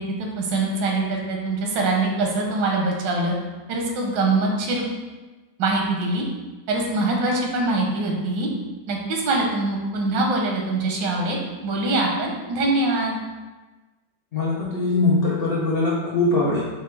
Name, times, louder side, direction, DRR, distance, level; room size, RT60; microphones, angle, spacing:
voice 1, 0.0-3.3 3.7-4.8 5.6-6.2 6.7-8.5 8.9-13.2, right 2 dB, 85° right, 0 dB, 1.4 m, -23 dB
voice 2, 14.3-16.6, left 2 dB, 80° left, -6 dB, 0.5 m, -21 dB
5.4 x 2.2 x 3.2 m, 1.2 s
omnidirectional pair, 1.9 m